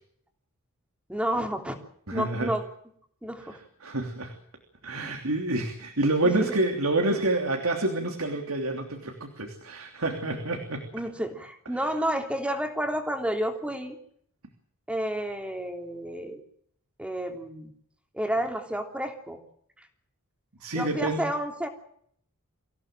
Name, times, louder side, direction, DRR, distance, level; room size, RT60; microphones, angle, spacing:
voice 1, 1.1-1.8 2.1-2.6 3.2-3.6 5.0-5.1 6.4-6.6 7.0-7.2 10.9-14.0 14.9-16.4 17.0-17.7 18.1-19.4 20.7-21.7, equal, 5° right, 4 dB, 3.2 m, -30 dB
voice 2, 2.1-2.5 3.8-4.3 4.8-10.9 20.6-21.3, right 2 dB, 75° right, 4 dB, 3.2 m, -28 dB
25.5 x 16.5 x 7.7 m, 0.67 s
head